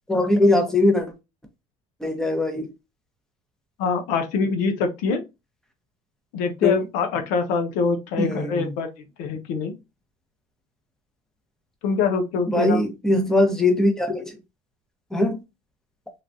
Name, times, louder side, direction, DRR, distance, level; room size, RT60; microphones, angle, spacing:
voice 1, 0.1-1.1 2.0-2.7 6.6-6.7 8.2-8.7 12.5-14.2 15.1-15.4, left 2 dB, 5° left, 0.7 m, -20 dB
voice 2, 3.8-5.2 6.3-8.9 9.2-9.7 11.8-12.8, left 5 dB, 85° left, 0.7 m, -24 dB
3.2 x 2.2 x 2.5 m
cardioid pair, 120°, 13 cm